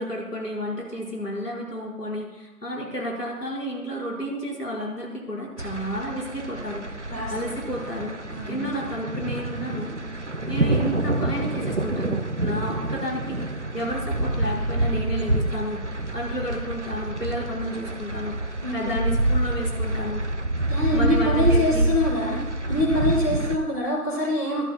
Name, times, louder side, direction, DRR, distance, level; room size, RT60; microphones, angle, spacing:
voice 1, 0.0-8.1 8.5-10.0 10.5-13.4 13.7-20.2 20.9-21.9, equal, 80° left, -3 dB, 5.2 m, -31 dB
sound 1, 5.6-23.6, right 1 dB, 50° right, 0.6 m, -27 dB
voice 2, 7.1-7.7 8.3-8.8 18.6-19.1 20.7-22.4 22.7-24.6, left 1 dB, 10° left, -11 dB, 3.3 m, -25 dB
24.5 x 11.5 x 2.3 m, 1.1 s
figure-of-eight pair, 170°, 47 cm